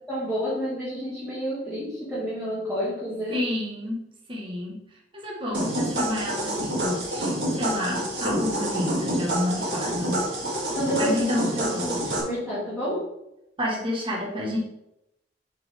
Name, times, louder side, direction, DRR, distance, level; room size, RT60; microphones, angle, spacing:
voice 1, 0.1-3.5 9.6-9.7 10.7-11.2 11.5-13.1, equal, ahead, -11 dB, 2.1 m, -30 dB
voice 2, 3.3-4.8 5.1-10.3 11.0-12.0 13.6-14.6, left 1 dB, 30° right, -3 dB, 1.6 m, -30 dB
sound 1, 5.5-12.2, right 1 dB, 65° right, 1.9 m, -28 dB
7.3 x 4.5 x 3.6 m, 0.86 s
head